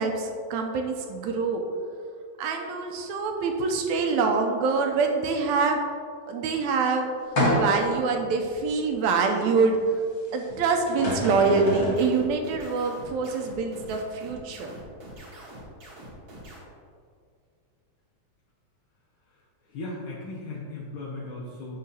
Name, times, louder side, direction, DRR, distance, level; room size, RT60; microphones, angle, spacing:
voice 1, 0.0-1.6 2.4-5.8 6.3-7.1 7.5-9.8 10.3-14.7, right 4 dB, 80° right, 3 dB, 1.8 m, -25 dB
sound 1, 7.4-8.0 8.6-8.7 10.5-10.6 10.9-12.0, equal, 45° left, 0.8 m, -26 dB
sound 2, 11.6-16.6, right 1 dB, 50° right, 1.1 m, -45 dB
voice 2, 19.6-21.8, left 2 dB, 75° left, -6 dB, 1.2 m, -37 dB
7.6 x 6.1 x 2.7 m, 2.2 s
omnidirectional pair, 3.5 m